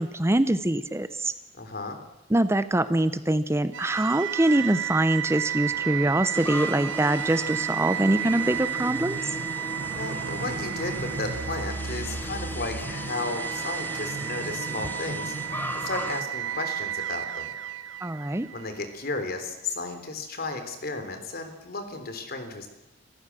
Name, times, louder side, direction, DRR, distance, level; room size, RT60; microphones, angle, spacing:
voice 1, 0.0-1.3 2.3-9.4 18.0-18.5, right 1 dB, 15° right, 13 dB, 0.7 m, -24 dB
voice 2, 1.5-2.0 9.9-15.3 15.7-17.5 18.5-22.7, left 3 dB, 55° left, 7 dB, 3.6 m, -34 dB
sound 1, 3.7-18.9, right 8 dB, 80° right, 0.9 m, -32 dB
sound 2, 6.3-16.2, left 1 dB, 10° left, 1.2 m, -37 dB
27.5 x 14.5 x 7.5 m, 1.0 s
head